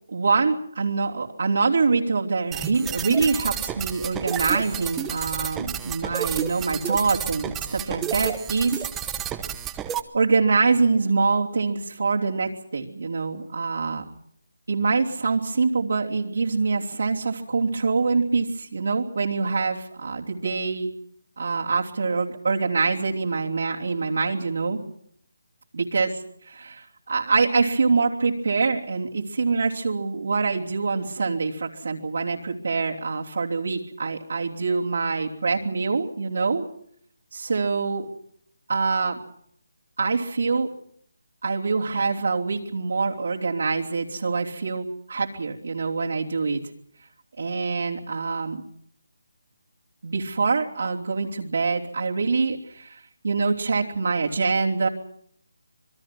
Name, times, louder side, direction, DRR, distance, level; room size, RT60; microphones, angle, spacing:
voice 1, 0.1-8.9 10.1-14.0 14.7-20.9 21.4-24.8 25.7-26.1 26.4-36.6 37.3-38.1 38.7-39.2 40.0-40.7 41.4-46.6 47.4-48.6 50.0-54.9, right 4 dB, 65° right, -3 dB, 3.2 m, -25 dB
sound 1, 2.5-10.0, right 10 dB, 10° right, 1.0 m, -31 dB
27.0 x 21.5 x 6.1 m, 0.66 s
hypercardioid pair, 170°, 0 cm